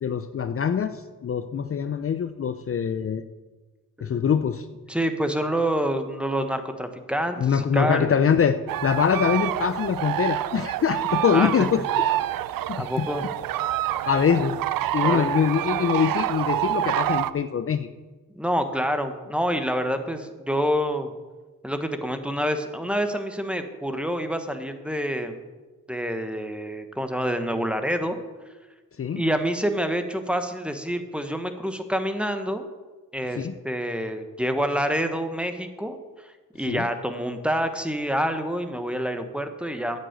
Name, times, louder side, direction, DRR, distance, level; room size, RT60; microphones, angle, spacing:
voice 1, 0.0-3.2 4.0-4.7 7.4-11.8 12.7-13.1 14.1-14.5 14.9-17.9 29.0-29.2 33.4-33.5 36.7-36.8, left 7 dB, 40° left, 10 dB, 0.6 m, -23 dB
voice 2, 4.9-8.2 11.3-11.7 12.8-13.2 15.0-15.3 18.3-21.1 21.6-25.4 25.9-28.2 29.2-32.7 33.1-36.0 36.2-40.0, equal, 5° right, 7 dB, 1.2 m, -27 dB
sound 1, 8.7-17.3, right 13 dB, 85° right, 0.5 m, -27 dB
9.1 x 6.6 x 8.1 m, 1.3 s
cardioid pair, 70°, 33 cm